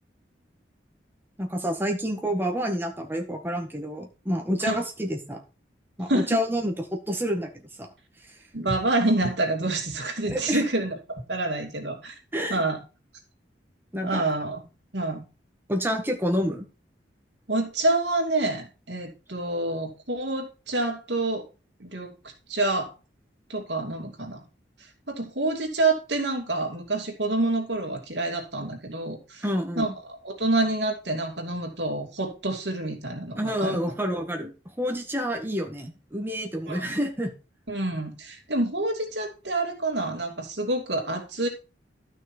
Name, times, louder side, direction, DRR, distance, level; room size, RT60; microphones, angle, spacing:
voice 1, 1.4-5.4 6.0-7.5 7.8-7.9 10.3-10.6 12.3-12.6 13.9-14.2 15.7-16.7 29.4-29.9 33.4-34.5 34.8-37.3, equal, 10° right, 3 dB, 1.7 m, -28 dB
voice 2, 6.1-6.4 8.5-12.1 12.5-12.8 14.0-14.6 14.9-15.2 17.5-21.5 21.8-22.9 23.5-24.4 24.8-29.4 29.8-33.8 36.7-36.9 37.7-41.5, right 2 dB, 65° right, 2 dB, 2.7 m, -27 dB
12.5 x 6.1 x 4.5 m, 0.32 s
head